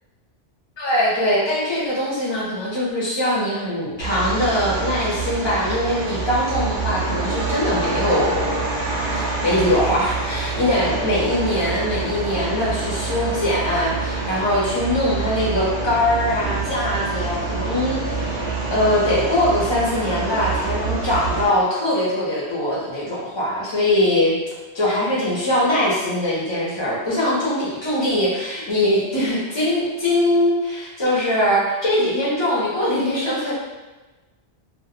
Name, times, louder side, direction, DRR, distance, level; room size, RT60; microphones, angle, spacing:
voice 1, 0.8-8.6 9.1-24.3 24.7-33.5, left 1 dB, 40° left, -6 dB, 0.4 m, -22 dB
sound 1, 4.0-21.5, right 4 dB, 60° right, 0.6 m, -26 dB
2.1 x 2.0 x 3.0 m, 1.2 s
omnidirectional pair, 1.2 m